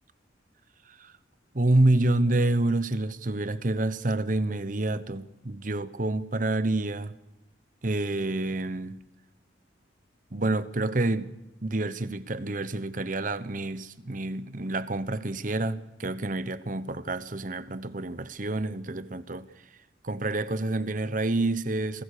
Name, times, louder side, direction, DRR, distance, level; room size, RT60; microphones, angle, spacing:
voice 1, 1.5-7.1 7.8-9.0 10.3-11.3 11.6-19.5 20.0-22.0, right 2 dB, 45° right, 1.0 m, -28 dB
28.0 x 19.5 x 6.7 m
head